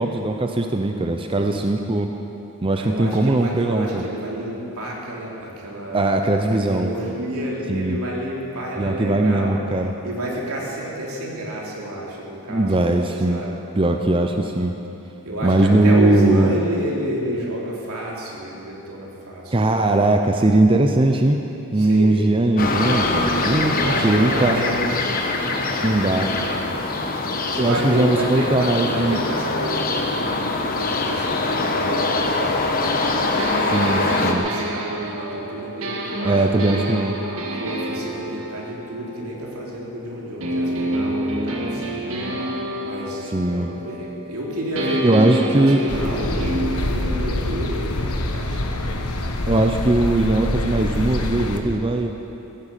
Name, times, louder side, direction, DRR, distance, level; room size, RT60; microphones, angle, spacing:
voice 1, 0.0-2.1 2.6-4.0 5.9-6.9 7.7-8.0 8.8-9.9 12.5-13.4 13.7-14.8 15.4-16.5 19.5-21.4 21.7-24.6 25.8-26.3 27.6-29.2 33.6-34.4 36.2-37.2 43.3-43.7 45.0-45.8 49.5-52.1, right 2 dB, 25° right, 4 dB, 0.6 m, -19 dB
voice 2, 2.8-9.6 10.0-13.6 15.2-19.8 21.8-22.5 23.7-26.9 27.5-33.2 33.7-36.9 37.6-42.4 42.8-46.6 46.9-48.8, right 1 dB, 85° right, -3 dB, 3.2 m, -30 dB
sound 1, 22.6-34.3, left 2 dB, 40° left, 1.1 m, -23 dB
sound 2, 33.4-39.9 40.4-44.4 44.8-50.5, right 1 dB, 65° right, 1.9 m, -29 dB
sound 3, 45.9-51.6, left 1 dB, 90° left, 1.2 m, -25 dB
16.0 x 10.5 x 7.4 m, 2.9 s
head